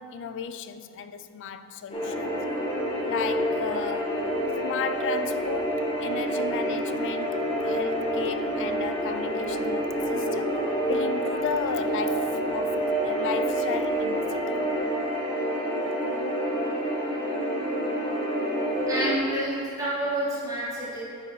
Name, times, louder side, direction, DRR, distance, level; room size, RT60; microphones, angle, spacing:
voice 1, 0.0-2.4 3.0-4.2 4.6-10.6 10.9-14.4, left 7 dB, 55° left, 0.3 m, -34 dB
sound 1, 1.9-19.2, right 1 dB, 25° left, 1.3 m, -28 dB
voice 2, 18.8-21.0, right 1 dB, 15° right, 1.6 m, -29 dB
9.2 x 5.6 x 3.1 m
head